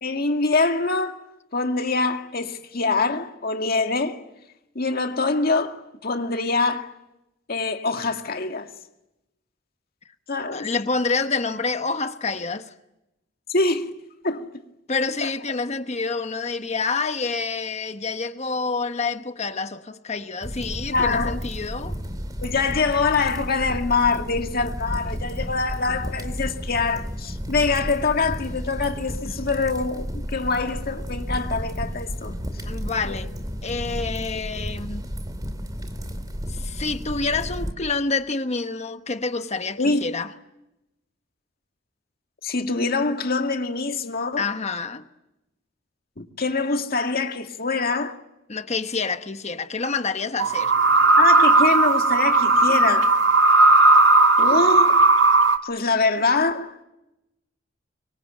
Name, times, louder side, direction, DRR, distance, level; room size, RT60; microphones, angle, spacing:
voice 1, 0.0-1.2 1.5-4.2 4.8-6.9 7.5-8.7 10.3-10.7 13.5-13.9 14.2-14.5 15.2-15.3 20.9-21.4 22.4-32.3 33.0-33.2 39.8-40.0 42.4-44.5 46.2-48.2 51.2-53.2 54.4-55.0 55.6-56.7, left 3 dB, 50° left, 2.1 m, -24 dB
voice 2, 10.5-12.7 14.9-22.0 29.3-29.4 32.7-33.3 33.6-35.1 36.5-40.3 44.4-45.0 48.5-50.7, left 4 dB, 35° left, 1.1 m, -27 dB
sound 1, 20.4-37.7, equal, 20° right, 2.6 m, -32 dB
sound 2, 50.4-55.6, right 3 dB, 75° right, 1.7 m, -16 dB
25.0 x 23.5 x 9.0 m
head